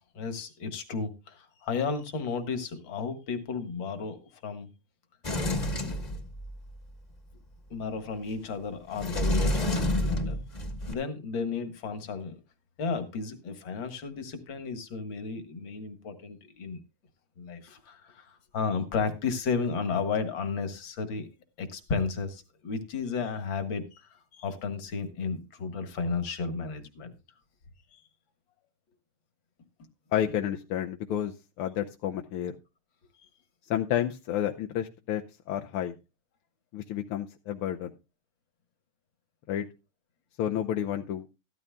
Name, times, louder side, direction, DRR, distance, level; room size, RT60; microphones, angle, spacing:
voice 1, 0.1-4.7 5.8-5.9 7.7-10.4 10.9-12.4 12.8-16.8 17.4-21.3 21.6-27.1 27.9-28.0, left 5 dB, 65° left, 8 dB, 2.2 m, -33 dB
Sliding door, 5.2-6.8 8.9-10.9, left 1 dB, 25° left, 1.1 m, -29 dB
voice 2, 30.1-32.6 33.7-35.9 36.7-37.9 39.5-39.7 40.4-41.3, left 10 dB, 85° left, 4 dB, 1.7 m, -30 dB
14.0 x 13.0 x 2.2 m, 0.28 s
omnidirectional pair, 2.3 m